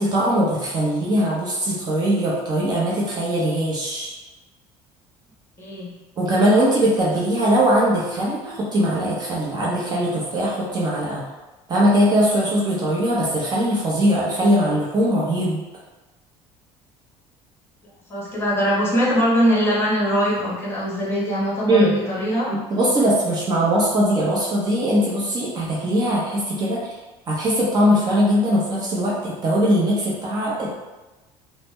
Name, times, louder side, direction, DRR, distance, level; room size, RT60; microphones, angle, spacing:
voice 1, 0.0-4.1 6.2-11.2 11.7-15.6 21.7-22.0 22.5-26.9 27.3-30.7, equal, 35° right, -6 dB, 0.8 m, -20 dB
voice 2, 5.6-5.9 18.1-22.5, equal, 20° left, -7 dB, 1.2 m, -21 dB
3.2 x 2.1 x 3.1 m, 1.1 s
cardioid pair, 115°, 12 cm